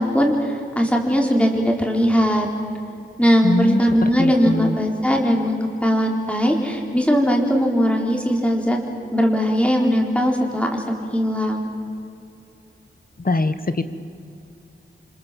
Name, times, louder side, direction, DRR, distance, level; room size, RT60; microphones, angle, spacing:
voice 1, 0.0-2.5 3.2-8.8 9.1-10.8 11.1-11.7, equal, 5° left, 0 dB, 4.1 m, -19 dB
voice 2, 3.4-4.8 13.2-13.8, left 3 dB, 45° left, 11 dB, 1.4 m, -23 dB
28.0 x 26.0 x 7.7 m, 2.7 s
wide cardioid pair, 95°, 21 cm